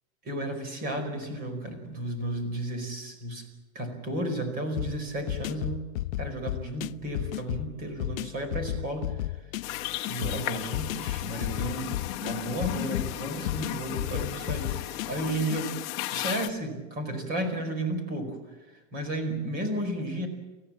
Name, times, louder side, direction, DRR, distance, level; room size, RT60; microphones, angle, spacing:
voice 1, 0.2-3.4 3.7-5.8 6.2-9.1 9.7-15.8 16.1-18.4 18.9-20.3, right 1 dB, 20° right, 7 dB, 4.9 m, -33 dB
sound 1, 4.8-15.6, left 15 dB, 80° left, 0.6 m, -34 dB
sound 2, 9.6-16.5, left 15 dB, 30° left, 1.2 m, -35 dB
29.0 x 15.5 x 7.6 m, 1.2 s
supercardioid pair, 165°, 40 cm